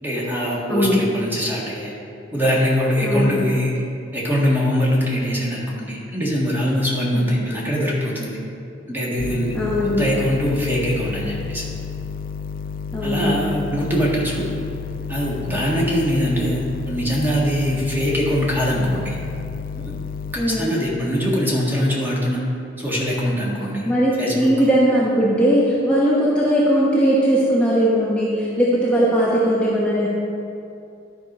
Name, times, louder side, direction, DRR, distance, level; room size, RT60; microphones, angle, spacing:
voice 1, 0.0-1.9 2.3-3.7 4.1-8.4 8.9-9.6 10.0-11.6 13.0-14.5 15.1-19.2 19.7-20.0 20.3-22.4 22.8-23.9 24.2-24.5, equal, 10° right, -5 dB, 1.7 m, -22 dB
voice 2, 0.7-1.0 3.0-3.5 7.1-7.3 9.5-10.1 12.9-13.5 20.4-20.7 23.9-30.1, equal, 5° left, -8 dB, 1.1 m, -19 dB
sound 1, 9.2-20.4, left 6 dB, 50° left, 0.4 m, -31 dB
12.0 x 4.6 x 5.4 m, 2.6 s
head